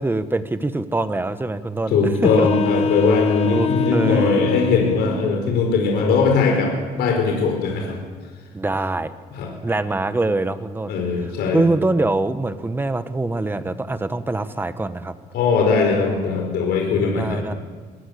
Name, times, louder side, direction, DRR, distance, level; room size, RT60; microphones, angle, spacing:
voice 1, 0.0-2.0 2.4-2.5 2.8-2.9 3.5-4.4 8.5-9.1 9.6-10.9 11.5-15.1 17.0-17.5, right 2 dB, 10° right, 11 dB, 1.3 m, -24 dB
voice 2, 1.9-8.0 9.3-9.5 10.9-11.6 15.3-17.4, left 4 dB, 75° left, 1 dB, 5.1 m, -20 dB
sound 1, 2.1-5.1, left 5 dB, 40° left, 0.8 m, -24 dB
22.0 x 16.5 x 8.6 m, 1.5 s
cardioid pair, 110°, 17 cm